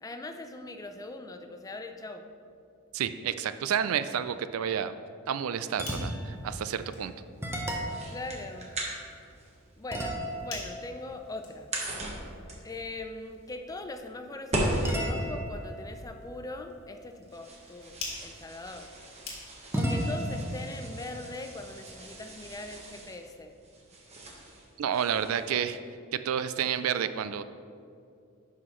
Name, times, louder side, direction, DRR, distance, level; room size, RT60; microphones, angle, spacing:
voice 1, 0.0-2.2 8.1-8.7 9.8-11.7 12.6-18.9 19.7-23.5, left 2 dB, 15° left, 6 dB, 0.4 m, -41 dB
voice 2, 2.9-4.9 5.3-7.1 24.8-25.8 26.1-27.4, right 8 dB, 75° right, 12 dB, 0.4 m, -30 dB
sound 1, 5.7-19.9, left 3 dB, 65° left, 2.0 m, -49 dB
sound 2, 5.7-6.4 6.9-7.0 7.4-9.4 9.9-12.6 14.8-17.5 19.7-22.3, equal, 10° right, 0.9 m, -36 dB
sound 3, 6.7-25.6, right 1 dB, 30° right, 1.2 m, -39 dB
11.0 x 5.7 x 3.1 m, 2.4 s
head